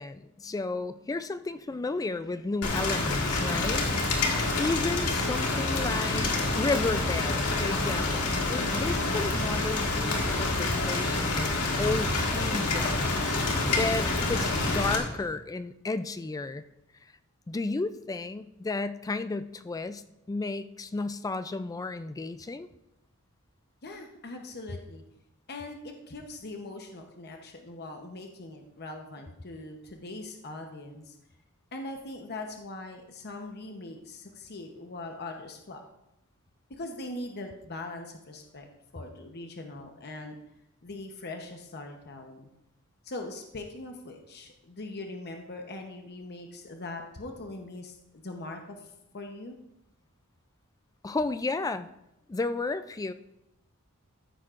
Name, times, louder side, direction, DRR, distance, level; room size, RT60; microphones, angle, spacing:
voice 1, 0.0-11.5 11.8-13.4 13.7-16.6 17.5-20.0 20.3-22.7 51.0-51.9 52.3-53.1, left 3 dB, 15° left, 12 dB, 0.3 m, -33 dB
Rain, 2.6-15.0, left 2 dB, 75° left, 1.9 m, -27 dB
voice 2, 23.8-25.0 25.5-31.2 31.7-35.8 36.8-38.7 38.9-40.3 40.8-42.5 43.0-49.6, left 2 dB, 50° left, 3 dB, 0.9 m, -41 dB
14.0 x 10.0 x 2.5 m, 0.86 s
head